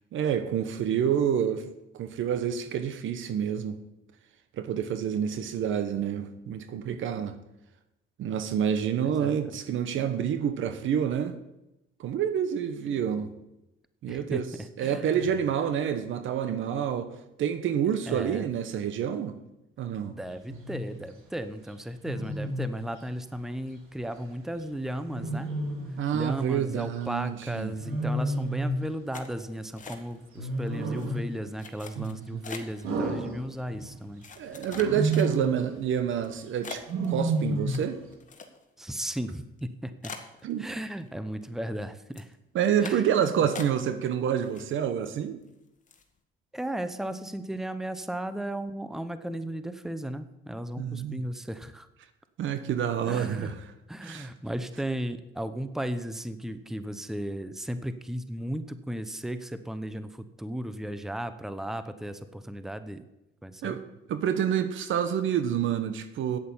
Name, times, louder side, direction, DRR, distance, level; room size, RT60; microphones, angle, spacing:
voice 1, 0.1-3.8 4.5-7.4 8.2-11.4 12.0-13.3 14.0-14.5 14.8-17.1 17.4-19.4 19.8-20.2 26.0-27.7 32.0-32.5 34.4-38.0 40.4-40.7 42.5-45.4 50.8-51.2 52.4-53.6 54.0-54.3 63.6-63.8 64.1-66.4, right 8 dB, 70° right, 10 dB, 1.1 m, -28 dB
voice 2, 9.0-9.4 14.1-14.4 14.8-15.0 18.1-18.5 20.1-25.5 26.1-34.2 38.8-40.1 40.6-42.3 42.8-43.5 46.5-51.9 53.1-53.5 53.9-63.0 63.4-63.8, right 1 dB, ahead, 11 dB, 0.8 m, -35 dB
Wild animals, 20.5-20.8 22.1-22.8 25.1-26.0 27.8-28.9 30.4-31.3 32.8-34.0 34.7-35.6 36.9-37.9, right 2 dB, 85° right, 2.5 m, -30 dB
sound 1, 29.1-30.4 30.7-31.1 31.6-32.8 33.5-33.6 34.2-35.6 36.1-36.3 36.6-38.8 39.1-39.2 39.6-39.7 40.0-41.1 41.4-41.8 42.1-42.3 42.8-43.2 43.5-44.1 44.4-45.1 45.4-45.5 45.9-46.1, left 5 dB, 35° left, 1.6 m, -43 dB
8.8 x 8.5 x 7.2 m, 0.92 s
supercardioid pair, 75°, 21 cm